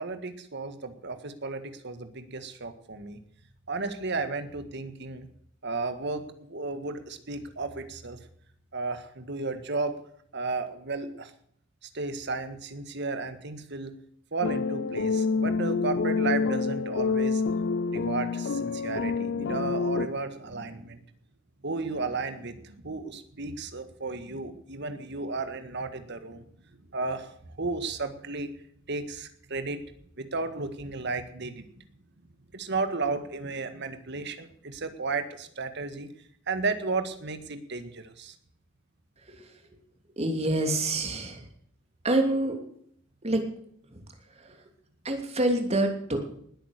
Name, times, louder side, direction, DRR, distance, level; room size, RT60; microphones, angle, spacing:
voice 1, 0.0-3.2 3.7-5.3 5.6-8.2 8.7-10.0 10.3-11.3 11.8-14.0 14.3-17.4 17.9-21.0 21.6-26.4 26.9-28.5 28.9-29.8 30.2-31.8 32.5-36.1 36.5-38.3, right 3 dB, 60° right, 9 dB, 1.8 m, -33 dB
sound 1, 14.4-20.1, left 4 dB, 60° left, 0.5 m, -27 dB
voice 2, 39.3-39.7 40.2-41.5 42.0-42.6 43.2-43.4 43.9-44.0 44.3-44.6 45.0-46.4, right 1 dB, 35° right, 4 dB, 3.0 m, -27 dB
19.5 x 9.1 x 6.7 m, 0.67 s
head